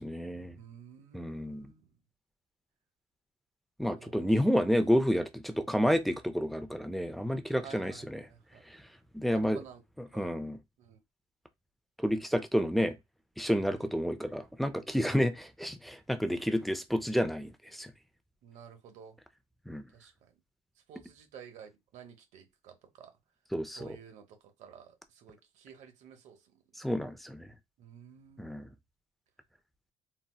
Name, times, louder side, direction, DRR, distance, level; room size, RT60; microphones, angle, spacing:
voice 1, 0.0-0.6 1.1-1.7 3.8-8.2 9.1-9.6 10.0-10.6 12.0-13.0 13.4-17.9 19.7-19.8 23.5-24.0 26.8-27.5 28.4-28.7, equal, ahead, 0.4 m, -30 dB
voice 2, 0.6-1.9 4.0-4.3 7.6-8.6 9.3-9.8 10.1-10.3 10.8-11.0 13.5-14.0 18.4-19.2 19.9-20.1 20.9-23.1 23.7-26.4 27.8-28.5, right 8 dB, 85° right, 0.9 m, -52 dB
4.0 x 2.0 x 2.2 m
cardioid pair, 120°, 12 cm